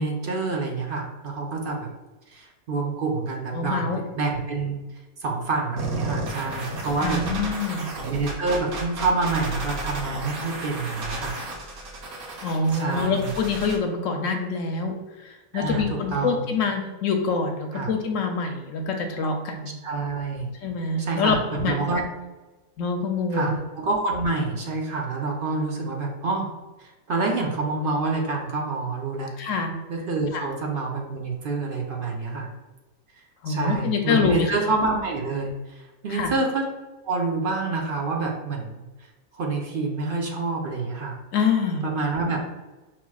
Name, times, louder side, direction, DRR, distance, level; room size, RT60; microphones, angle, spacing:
voice 1, 0.0-1.9 2.3-4.8 5.2-7.2 8.0-11.4 12.7-13.3 15.5-16.4 17.7-17.9 19.8-20.5 21.0-22.1 23.3-26.5 26.8-29.3 29.9-32.5 33.5-36.7 37.0-38.9 39.3-41.2 41.8-42.4, right 3 dB, 50° right, 0 dB, 0.7 m, -27 dB
voice 2, 3.5-4.0 7.0-7.9 12.4-15.0 15.2-19.7 20.6-21.8 22.8-23.6 29.4-29.7 30.3-30.4 33.4-34.5 36.1-36.3 41.3-41.8, left 4 dB, 70° left, 4 dB, 1.0 m, -25 dB
sound 1, 5.8-13.8, right 1 dB, 85° right, 1.3 m, -33 dB
5.8 x 2.9 x 2.3 m, 1.1 s
omnidirectional pair, 1.5 m